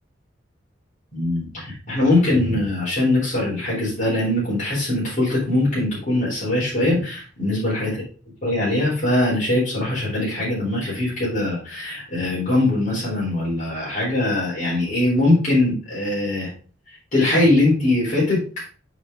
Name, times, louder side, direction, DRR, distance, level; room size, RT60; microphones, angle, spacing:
voice 1, 1.1-8.0 8.4-16.5 17.1-18.6, left 2 dB, 45° left, -8 dB, 4.0 m, -21 dB
6.5 x 6.0 x 3.8 m, 0.39 s
head